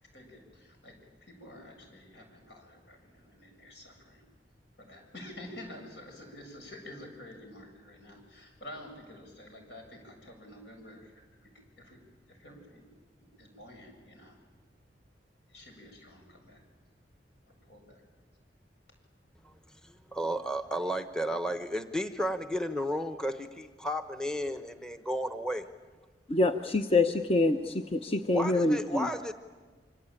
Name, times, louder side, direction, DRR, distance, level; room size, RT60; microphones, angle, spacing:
voice 1, 0.1-4.2 4.8-11.5 11.8-12.0 12.3-12.8 13.2-14.4 15.5-16.6 17.4-18.0, left 1 dB, 75° left, 2 dB, 7.7 m, -49 dB
voice 2, 19.8-25.7 28.3-29.3, equal, 5° left, 8 dB, 0.9 m, -33 dB
voice 3, 26.3-29.1, left 2 dB, 35° left, 6 dB, 0.9 m, -26 dB
26.0 x 25.5 x 9.0 m, 1.4 s
head